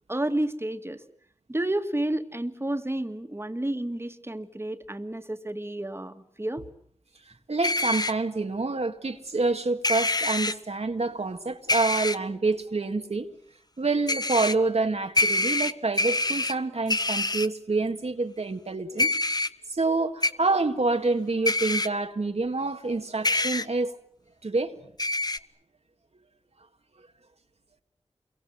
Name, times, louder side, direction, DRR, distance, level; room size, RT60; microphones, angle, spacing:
voice 1, 0.1-1.0 1.5-6.6, right 1 dB, 20° right, 2.0 m, -30 dB
voice 2, 7.5-13.3 13.8-19.1 19.7-23.9 24.4-24.8, right 3 dB, 65° right, 1.9 m, -27 dB
sound 1, 7.6-8.1 9.8-10.5 11.7-12.2 14.1-14.5 15.2-16.5 16.9-17.5 19.0-19.5 20.2-20.3 21.5-21.9 23.2-23.7 25.0-25.4, left 2 dB, 35° left, 1.1 m, -25 dB
28.0 x 23.5 x 7.8 m
wide cardioid pair, 45°, 12 cm